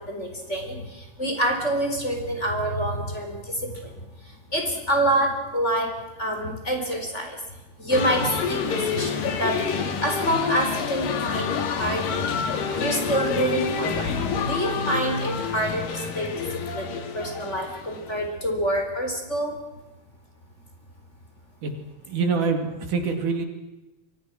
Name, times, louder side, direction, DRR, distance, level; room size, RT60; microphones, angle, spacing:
voice 1, 0.1-3.9 4.5-5.9 6.2-7.4 7.8-12.2 12.7-14.1 14.5-16.3 16.7-16.9 17.1-19.6, right 1 dB, 20° left, 3 dB, 4.4 m, -27 dB
sound 1, 7.9-18.2, left 5 dB, 90° left, 3.8 m, -28 dB
voice 2, 22.1-23.4, right 4 dB, 65° right, 5 dB, 4.0 m, -25 dB
29.5 x 24.0 x 6.2 m, 1.1 s
omnidirectional pair, 3.8 m